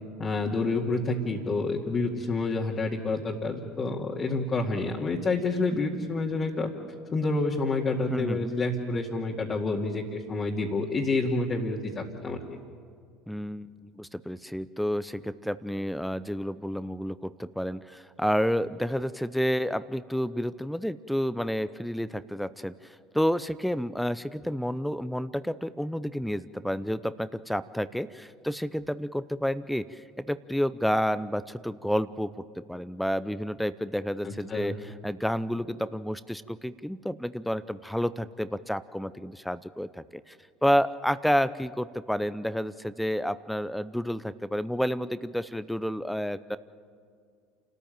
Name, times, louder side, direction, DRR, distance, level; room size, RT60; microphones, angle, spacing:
voice 1, 0.2-6.7 7.1-12.6 34.2-34.8, left 3 dB, 35° left, -3 dB, 2.2 m, -28 dB
voice 2, 8.1-8.5 13.3-40.4 40.6-46.6, equal, ahead, 15 dB, 0.6 m, -30 dB
28.5 x 13.5 x 9.1 m, 2.2 s
hypercardioid pair, 75°, 0 cm